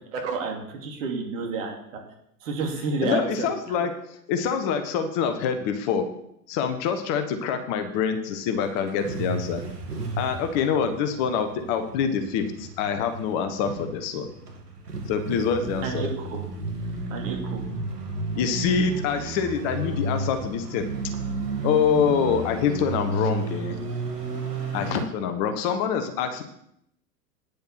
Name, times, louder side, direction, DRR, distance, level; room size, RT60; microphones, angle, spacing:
voice 1, 0.1-1.8 2.4-3.5 15.8-16.4 17.1-17.6, right 4 dB, 55° right, 1 dB, 2.9 m, -30 dB
voice 2, 3.0-6.1 6.5-9.6 10.2-14.3 15.1-16.1 18.4-21.1 21.6-23.8 24.7-26.4, left 7 dB, 35° left, 7 dB, 1.1 m, -25 dB
sound 1, 8.6-25.0, right 3 dB, 75° right, 2.4 m, -33 dB
9.6 x 6.9 x 5.9 m, 0.74 s
figure-of-eight pair, 100°, 48 cm